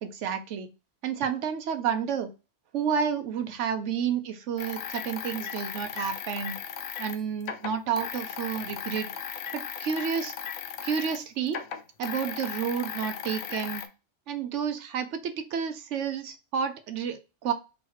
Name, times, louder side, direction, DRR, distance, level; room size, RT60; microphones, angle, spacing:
voice 1, 0.0-0.7 1.0-2.3 2.7-6.6 7.0-9.1 9.5-10.3 10.8-11.6 12.0-13.8 14.3-17.5, right 7 dB, 80° right, 9 dB, 1.0 m, -30 dB
sound 1, 4.6-11.2 11.5-13.9, left 8 dB, 85° left, 0.9 m, -37 dB
3.9 x 3.0 x 3.0 m, 0.29 s
omnidirectional pair, 1.2 m